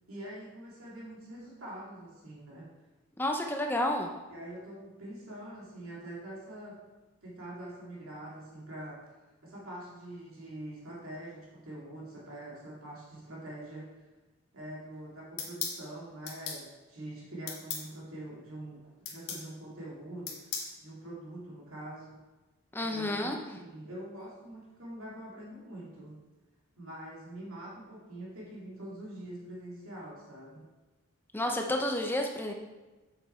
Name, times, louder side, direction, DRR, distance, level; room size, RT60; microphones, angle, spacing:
voice 1, 0.1-2.7 4.3-6.8 7.2-9.1 9.4-14.0 14.5-18.8 19.1-22.2 22.8-26.2 26.8-30.6, right 1 dB, 70° right, -5 dB, 2.4 m, -44 dB
voice 2, 3.2-4.1 22.7-23.4 31.3-32.5, left 1 dB, 10° left, 3 dB, 0.6 m, -30 dB
sound 1, 15.4-15.8 16.3-16.6 17.5-17.9 19.0-19.4 20.3-20.7, left 6 dB, 80° left, 1.6 m, -36 dB
7.8 x 6.8 x 4.4 m, 1.2 s
head